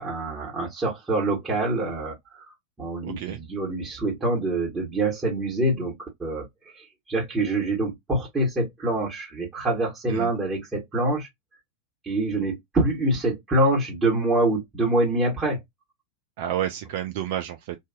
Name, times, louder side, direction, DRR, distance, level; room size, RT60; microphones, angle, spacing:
voice 1, 0.0-2.4 2.8-6.5 6.7-11.3 12.0-15.6, right 2 dB, 15° right, 1.4 m, -25 dB
voice 2, 3.0-3.4 10.1-10.3 16.4-17.8, right 11 dB, 55° right, 0.4 m, -30 dB
2.7 x 2.6 x 2.2 m
figure-of-eight pair, 90°, 0 cm